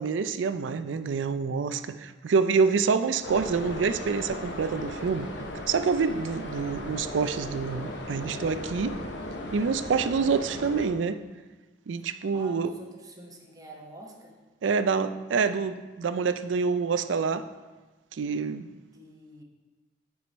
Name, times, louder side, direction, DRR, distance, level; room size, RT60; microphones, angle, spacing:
voice 1, 0.0-5.3 5.7-8.9 9.5-11.2 11.9-12.7 14.6-17.4 18.2-18.7, right 5 dB, 85° right, 12 dB, 0.4 m, -27 dB
sound 1, 3.2-10.9, left 1 dB, 70° left, 0.9 m, -37 dB
voice 2, 6.6-6.9 12.0-14.4 18.8-19.4, right 1 dB, 20° right, -1 dB, 1.0 m, -48 dB
9.2 x 4.8 x 4.1 m, 1.2 s
head